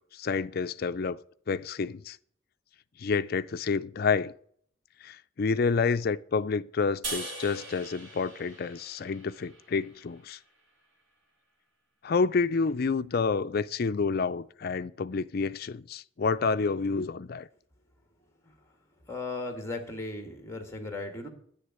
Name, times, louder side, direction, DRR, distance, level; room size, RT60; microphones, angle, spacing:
voice 1, 0.1-1.2 1.5-2.2 3.0-4.3 5.0-10.4 12.0-17.5, left 4 dB, 45° left, 0.4 m, -29 dB
sound 1, 7.0-10.3, right 2 dB, 65° right, 4.2 m, -41 dB
voice 2, 19.0-21.3, left 2 dB, 15° left, 1.7 m, -36 dB
10.0 x 6.6 x 9.0 m
head